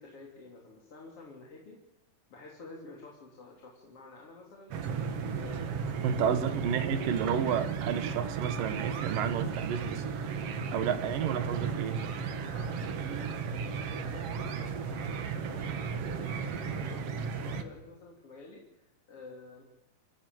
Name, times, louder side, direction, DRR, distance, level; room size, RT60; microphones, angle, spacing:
voice 1, 0.0-1.8 2.3-4.9 5.3-7.0 12.5-19.6, left 3 dB, 40° left, -2 dB, 3.9 m, -50 dB
sound 1, 4.7-17.6, right 6 dB, 55° right, 1.9 m, -35 dB
voice 2, 6.0-10.4 10.7-12.0, right 8 dB, 70° right, 11 dB, 3.0 m, -31 dB
27.5 x 16.0 x 7.8 m, 0.89 s
omnidirectional pair, 4.2 m